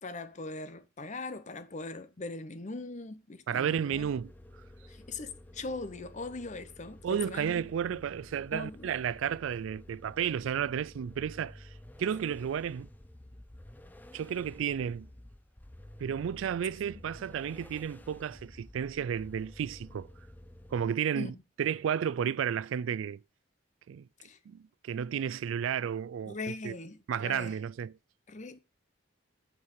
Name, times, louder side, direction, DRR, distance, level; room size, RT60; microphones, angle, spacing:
voice 1, 0.0-4.1 4.9-8.0 8.5-8.9 21.1-21.4 24.2-24.4 26.3-27.6 28.3-28.6, left 3 dB, 40° left, 0.7 m, -41 dB
voice 2, 3.5-4.3 7.0-11.7 12.0-12.9 14.1-15.1 16.0-20.1 20.7-21.3 21.6-23.2 23.9-24.1 24.5-26.4 26.6-26.8 27.1-27.9, right 8 dB, 80° right, 0.3 m, -32 dB
sound 1, 3.9-20.9, left 1 dB, 10° left, 0.5 m, -52 dB
8.5 x 4.7 x 6.5 m
head